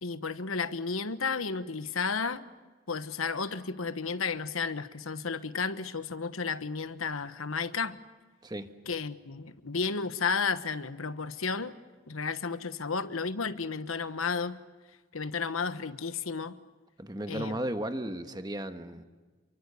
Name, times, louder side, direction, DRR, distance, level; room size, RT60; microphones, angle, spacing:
voice 1, 0.0-2.5 2.9-8.0 8.9-11.7 12.1-14.6 15.1-16.6 17.3-17.6, left 5 dB, 90° left, 1.2 m, -32 dB
voice 2, 17.0-19.0, right 1 dB, 20° right, 1.4 m, -35 dB
29.0 x 23.5 x 6.9 m
head